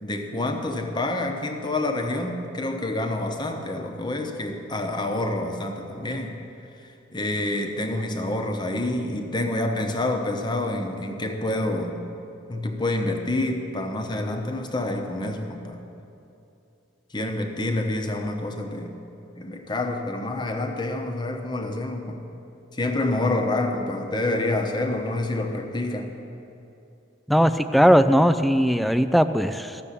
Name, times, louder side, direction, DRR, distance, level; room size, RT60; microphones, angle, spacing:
voice 1, 0.0-6.4 7.1-12.0 12.5-15.8 17.1-18.9 19.3-22.2 22.7-26.1, left 2 dB, 20° left, 4 dB, 1.0 m, -27 dB
voice 2, 27.3-29.8, equal, ahead, 10 dB, 0.3 m, -19 dB
14.0 x 6.9 x 8.4 m, 2.7 s
head